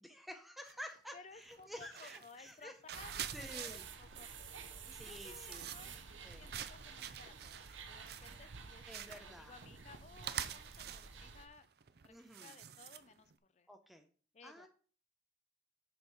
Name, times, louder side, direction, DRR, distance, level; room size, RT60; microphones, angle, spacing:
voice 1, 0.0-2.7 3.3-3.8 4.9-5.6 6.2-6.4 8.9-9.5 12.1-12.5 13.7-14.0 14.4-14.7, equal, ahead, 5 dB, 0.6 m, -51 dB
sound 1, 0.7-1.0 1.4-13.4, right 9 dB, 55° right, 0.5 m, -48 dB
voice 2, 1.1-11.7 12.0-13.7 14.3-14.7, left 4 dB, 35° left, 13 dB, 0.5 m, -58 dB
sound 2, 2.9-11.5, right 5 dB, 90° right, 0.9 m, -51 dB
6.9 x 5.3 x 4.5 m, 0.42 s
head